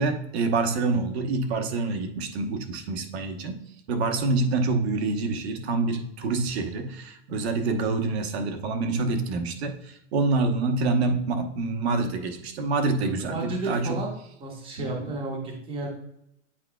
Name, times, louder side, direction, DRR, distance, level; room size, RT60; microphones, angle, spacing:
voice 1, 0.0-3.6 3.9-13.8 14.8-14.9, right 3 dB, 60° right, 6 dB, 1.1 m, -26 dB
voice 2, 13.3-14.1 14.4-15.9, right 2 dB, 15° right, 0 dB, 1.0 m, -32 dB
8.7 x 4.8 x 2.3 m, 0.79 s
supercardioid pair, 165°, 35 cm